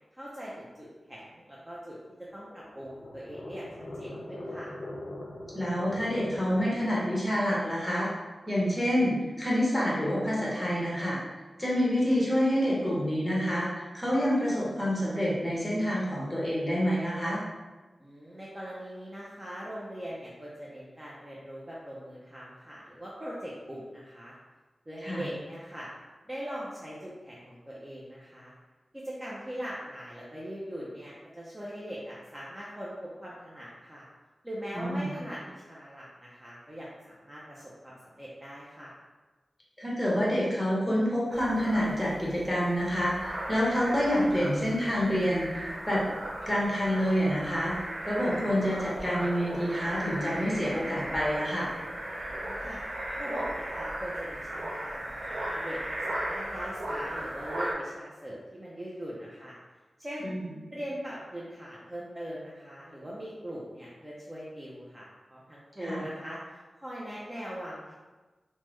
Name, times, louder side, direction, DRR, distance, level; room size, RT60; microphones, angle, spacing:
voice 1, 0.1-3.7 3.9-4.7 18.0-24.3 24.9-25.9 26.3-28.5 28.9-34.0 34.4-38.9 52.3-52.8 53.2-59.6 60.0-60.3 60.7-67.9, equal, 20° right, -6 dB, 0.5 m, -41 dB
sound 1, 2.3-7.2, left 1 dB, 60° left, 0.5 m, -41 dB
voice 2, 5.5-8.1 8.5-11.2 11.6-17.4 25.0-25.2 34.7-35.1 39.8-46.0 46.5-51.7 60.2-60.4 65.8-66.0, equal, 10° left, -6 dB, 1.1 m, -27 dB
sound 2, 41.3-57.7, right 1 dB, 90° right, 0.6 m, -37 dB
3.4 x 2.1 x 3.0 m, 1.2 s
wide cardioid pair, 85°, 0 cm